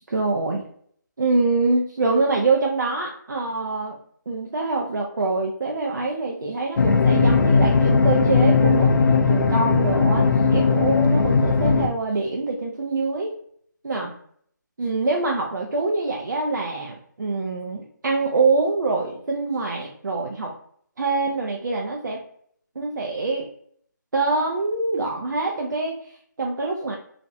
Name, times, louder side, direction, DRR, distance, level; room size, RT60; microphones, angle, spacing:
voice 1, 0.1-0.6 1.2-4.0 4.3-8.9 9.3-10.3 10.5-13.3 13.8-14.1 14.8-20.5 21.0-22.2 22.8-23.5 24.1-26.9, right 3 dB, 65° right, -1 dB, 0.5 m, -25 dB
sound 1, 6.8-11.9, left 4 dB, 75° left, 0.4 m, -18 dB
2.5 x 2.0 x 2.6 m, 0.62 s
figure-of-eight pair, 170°, 11 cm